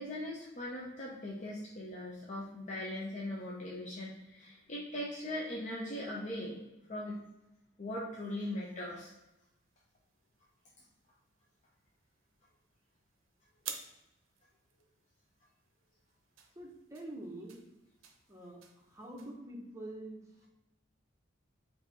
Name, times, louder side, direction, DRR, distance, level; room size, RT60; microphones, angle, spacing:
voice 1, 0.0-6.6 6.9-7.2 7.8-9.1, left 1 dB, 35° left, -4 dB, 0.5 m, -40 dB
sound 1, 8.6-19.4, right 7 dB, 80° right, 0.6 m, -53 dB
voice 2, 16.5-17.6 18.3-20.2, right 1 dB, 15° right, -1 dB, 0.7 m, -46 dB
4.6 x 2.7 x 4.0 m, 0.93 s
head